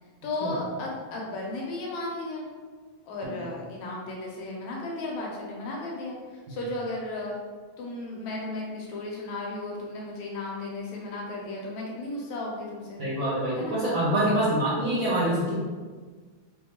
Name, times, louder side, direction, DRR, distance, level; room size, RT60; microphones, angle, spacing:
voice 1, 0.2-2.5 3.0-7.4 7.8-13.0 13.6-13.8, left 2 dB, 80° left, -2 dB, 2.0 m, -34 dB
voice 2, 13.0-15.6, right 1 dB, 65° right, -9 dB, 1.2 m, -26 dB
5.1 x 2.6 x 2.8 m, 1.4 s
omnidirectional pair, 3.4 m